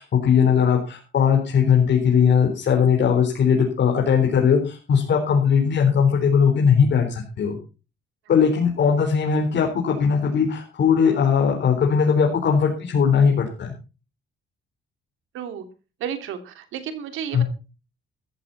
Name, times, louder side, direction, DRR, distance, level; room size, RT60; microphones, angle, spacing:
voice 1, 0.0-7.6 8.3-13.7 17.3-17.4, left 6 dB, 60° left, 1 dB, 4.1 m, -19 dB
voice 2, 15.3-15.6 16.0-17.4, right 8 dB, 90° right, 9 dB, 2.9 m, -32 dB
15.0 x 14.0 x 4.2 m, 0.33 s
cardioid pair, 90°, 20 cm